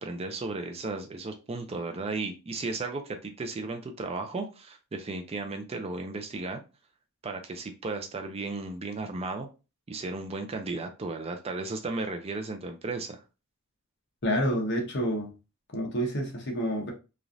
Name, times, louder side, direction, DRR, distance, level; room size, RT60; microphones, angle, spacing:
voice 1, 0.0-6.6 7.2-9.5 9.9-13.2, right 3 dB, 30° right, 0.4 m, -35 dB
voice 2, 14.2-15.3 15.7-16.9, equal, 55° left, 0.9 m, -28 dB
3.1 x 2.4 x 2.5 m
head